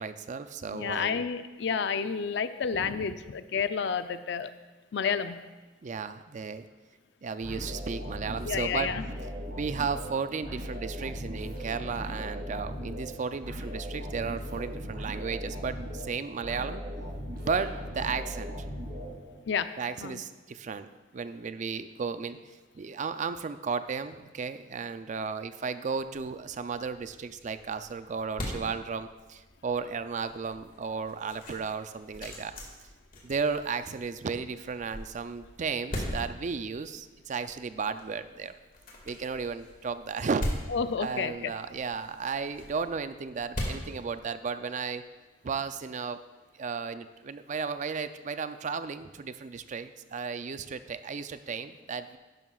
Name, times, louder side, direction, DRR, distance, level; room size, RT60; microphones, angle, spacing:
voice 1, 0.0-1.2 2.7-3.1 5.8-6.7 7.2-8.9 9.6-16.8 17.5-18.8 19.8-22.4 22.7-32.5 33.2-38.6 39.1-40.4 41.0-45.0 45.4-46.2 46.5-52.2, right 5 dB, 40° right, 11 dB, 0.4 m, -34 dB
voice 2, 0.7-4.5 4.9-5.4 8.4-9.0 19.5-19.7 20.0-20.2 40.7-41.5, left 6 dB, 70° left, 11 dB, 0.4 m, -30 dB
sound 1, 7.4-19.6, equal, 55° right, 2.6 m, -38 dB
sound 2, 26.2-44.8, left 1 dB, 50° left, 2.0 m, -41 dB
11.0 x 10.5 x 2.4 m, 1.2 s
head